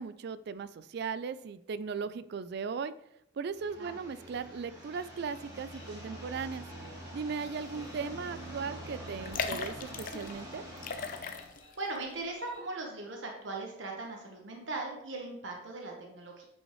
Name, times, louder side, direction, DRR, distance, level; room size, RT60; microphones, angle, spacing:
voice 1, 0.0-2.9 3.4-6.6 7.1-10.6, right 5 dB, 60° right, 14 dB, 0.4 m, -37 dB
sound 1, 3.5-11.5, right 1 dB, 20° right, 3.0 m, -46 dB
sound 2, 4.8-12.7, left 1 dB, 80° left, 2.4 m, -57 dB
sound 3, 7.9-8.1 8.4-8.5 9.2-10.4 10.8-11.8 12.2-12.3, left 5 dB, 45° left, 0.6 m, -37 dB
voice 2, 11.8-16.4, right 2 dB, 85° right, 1 dB, 1.3 m, -39 dB
8.9 x 5.4 x 3.1 m, 0.80 s
head